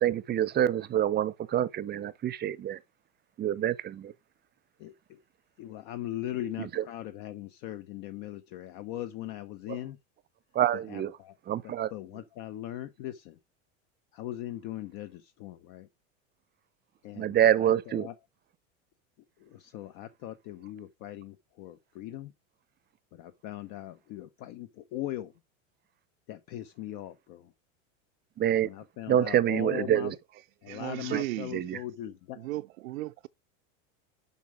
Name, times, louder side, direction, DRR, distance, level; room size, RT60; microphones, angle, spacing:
voice 1, 0.0-2.8 3.4-4.1 10.5-11.1 11.5-11.9 17.2-18.1 28.4-28.7 29.1-30.1 31.1-31.2 31.5-31.8, right 11 dB, 25° right, 0.6 m, -26 dB
voice 2, 4.8-5.2 5.6-10.0 10.7-11.4 11.6-13.4 14.1-15.9 17.0-18.2 19.4-22.3 23.1-25.3 26.3-27.5 28.6-30.1 30.6-32.5, left 13 dB, 55° left, 0.9 m, -40 dB
voice 3, 30.7-31.8 32.4-33.3, right 18 dB, 80° right, 0.6 m, -36 dB
7.1 x 5.5 x 4.8 m
hypercardioid pair, 105°, 39 cm